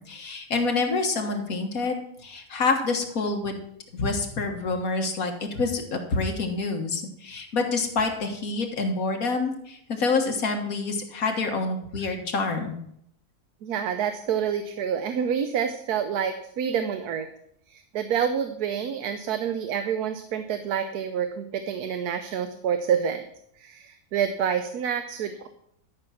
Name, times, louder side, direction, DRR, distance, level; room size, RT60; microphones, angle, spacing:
voice 1, 0.0-3.6 3.9-12.8, left 3 dB, 70° left, 3 dB, 1.9 m, -27 dB
voice 2, 13.6-17.3 17.7-23.3 23.6-25.5, right 8 dB, 90° right, 8 dB, 1.3 m, -28 dB
12.5 x 6.1 x 5.8 m, 0.73 s
omnidirectional pair, 1.6 m